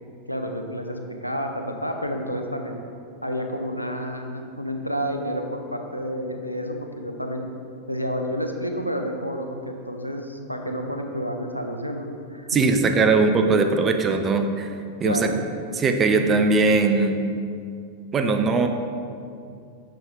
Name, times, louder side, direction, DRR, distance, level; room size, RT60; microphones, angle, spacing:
voice 1, 0.3-2.8 3.2-7.5 7.9-12.6 15.0-15.4, equal, 90° left, 4 dB, 0.6 m, -30 dB
voice 2, 12.5-14.7 15.0-15.3 15.8-17.2 18.1-18.7, right 3 dB, 25° right, 5 dB, 0.6 m, -20 dB
6.7 x 6.2 x 3.7 m, 2.4 s
figure-of-eight pair, 90°, 0 cm